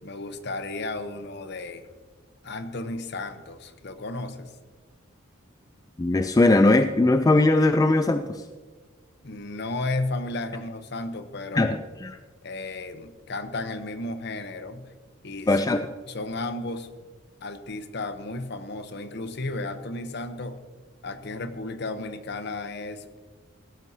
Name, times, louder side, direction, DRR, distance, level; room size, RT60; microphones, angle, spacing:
voice 1, 0.0-1.8 2.4-4.5 9.2-11.8 12.4-14.9 15.2-16.9 17.4-20.6 21.0-23.1, left 2 dB, 55° left, 10 dB, 0.8 m, -34 dB
voice 2, 6.0-8.4 11.5-12.2 15.5-15.8, left 2 dB, 15° left, 9 dB, 0.3 m, -20 dB
16.5 x 12.0 x 2.8 m, 1.4 s
head